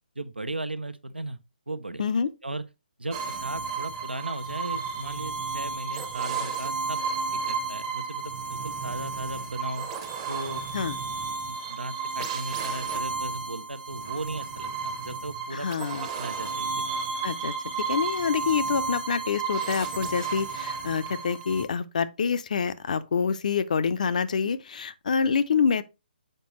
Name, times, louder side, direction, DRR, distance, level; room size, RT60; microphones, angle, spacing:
voice 1, 0.2-1.4 1.7-2.1 2.4-2.6 3.0-7.0 7.3-9.9 10.3-10.6 11.5-15.7 16.2-16.7, right 2 dB, 80° right, 0.8 m, -36 dB
voice 2, 2.0-2.3 10.7-11.0 15.5-16.1 17.2-25.8, left 6 dB, 45° left, 0.5 m, -27 dB
sound 1, 3.1-21.6, right 5 dB, 25° right, 0.9 m, -32 dB
6.6 x 5.1 x 3.0 m
figure-of-eight pair, 140°, 5 cm